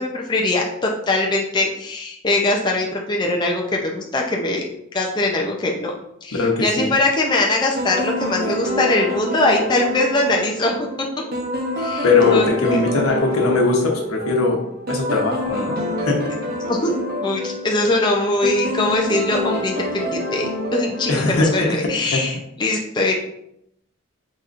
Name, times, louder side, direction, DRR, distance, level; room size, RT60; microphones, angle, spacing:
voice 1, 0.0-4.6 4.9-5.9 6.2-10.9 11.8-12.9 16.7-16.9 17.2-23.1, left 2 dB, 20° left, -1 dB, 0.4 m, -22 dB
voice 2, 6.3-6.9 12.0-14.6 14.9-16.2 21.1-22.2, left 3 dB, 85° left, 1 dB, 0.9 m, -20 dB
sound 1, 7.8-22.0, left 1 dB, 45° right, 0.7 m, -27 dB
4.2 x 3.8 x 2.5 m, 0.77 s
head